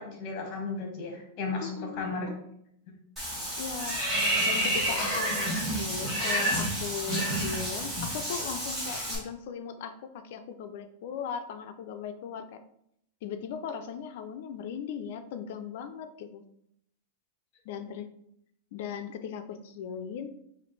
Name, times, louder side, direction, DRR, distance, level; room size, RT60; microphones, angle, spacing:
voice 1, 0.0-2.3 2.9-3.0, left 3 dB, 35° left, 2 dB, 1.3 m, -35 dB
voice 2, 1.6-2.1 3.6-4.0 4.5-12.6 13.2-16.4 17.6-18.1 18.7-20.3, left 7 dB, 60° left, 9 dB, 0.4 m, -38 dB
Water / Bathtub (filling or washing), 3.2-9.2, right 1 dB, 10° right, 1.5 m, -29 dB
4.9 x 2.5 x 3.2 m, 0.74 s
supercardioid pair, 150°, 0 cm